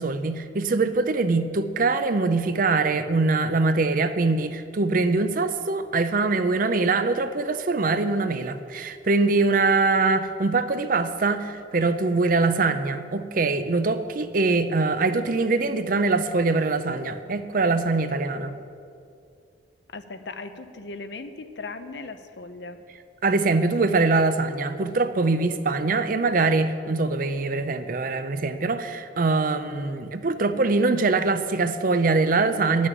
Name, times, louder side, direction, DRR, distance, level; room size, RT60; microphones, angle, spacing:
voice 1, 0.0-18.5 23.2-32.9, right 3 dB, 50° right, 10 dB, 0.6 m, -23 dB
voice 2, 19.9-22.8, left 3 dB, 80° left, 9 dB, 0.8 m, -38 dB
10.5 x 6.3 x 9.1 m, 2.4 s
head